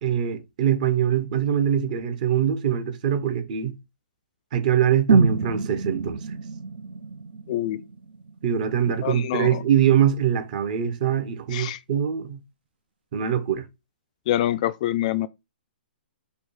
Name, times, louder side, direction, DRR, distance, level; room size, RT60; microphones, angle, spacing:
voice 1, 0.0-3.8 4.5-6.2 8.4-12.4 13.1-13.6, right 9 dB, 50° right, 1.0 m, -23 dB
sound 1, 5.1-9.1 9.4-9.5, right 4 dB, 80° right, 0.7 m, -26 dB
voice 2, 7.5-7.8 9.0-9.6 11.5-11.8 14.3-15.3, left 13 dB, 45° left, 0.3 m, -25 dB
4.6 x 2.3 x 4.8 m
hypercardioid pair, 145°, 6 cm